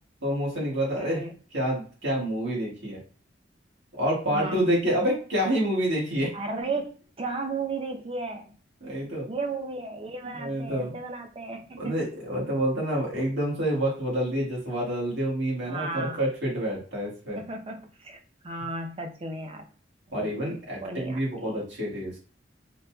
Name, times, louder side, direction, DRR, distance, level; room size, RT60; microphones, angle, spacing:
voice 1, 0.2-1.2 1.5-3.0 3.9-6.3 8.8-9.3 10.3-11.0 11.8-17.4 20.1-22.1, equal, 85° right, -4 dB, 1.7 m, -28 dB
voice 2, 1.0-1.3 4.3-5.0 6.3-6.9 7.2-8.6 9.3-12.0 15.6-16.2 17.3-18.2 18.4-19.7 20.2-20.3 20.8-21.6, right 3 dB, 30° right, 4 dB, 0.6 m, -34 dB
3.9 x 2.8 x 2.3 m, 0.40 s
head